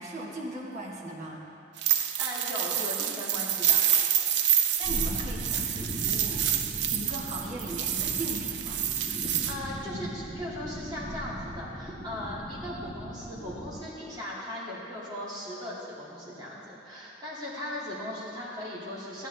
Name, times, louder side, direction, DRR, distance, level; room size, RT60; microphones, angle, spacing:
voice 1, 0.0-1.5 4.8-6.4 6.9-8.8, right 1 dB, 40° right, -4 dB, 1.5 m, -38 dB
sound 1, 1.8-9.5, right 10 dB, 65° right, 0.5 m, -28 dB
voice 2, 2.2-3.8 9.3-19.3, left 1 dB, 25° right, -7 dB, 2.4 m, -38 dB
sound 2, 4.8-13.7, equal, 5° left, 1.8 m, -38 dB
13.5 x 8.9 x 3.4 m, 2.8 s
head